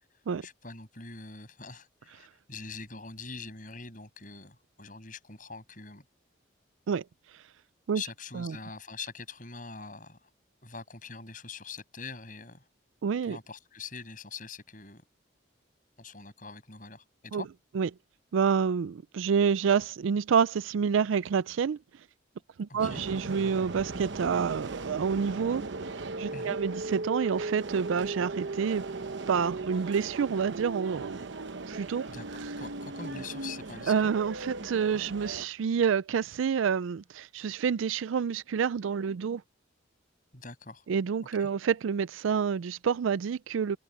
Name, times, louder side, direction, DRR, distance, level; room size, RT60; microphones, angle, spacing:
voice 1, 0.4-6.0 7.9-10.3 10.6-12.6 13.2-15.0 16.0-17.5 22.7-23.0 26.3-26.6 32.1-34.1 40.3-40.8 41.4-41.5, left 4 dB, 40° left, 7.9 m, -44 dB
voice 2, 13.0-13.4 17.3-17.4 17.7-17.9 18.3-21.8 22.6-25.6 26.2-28.8 29.3-31.2 31.7-32.1 33.9-39.4 40.9-43.8, right 6 dB, 85° right, 0.4 m, -28 dB
sound 1, 22.8-35.5, right 3 dB, 70° right, 1.0 m, -37 dB
head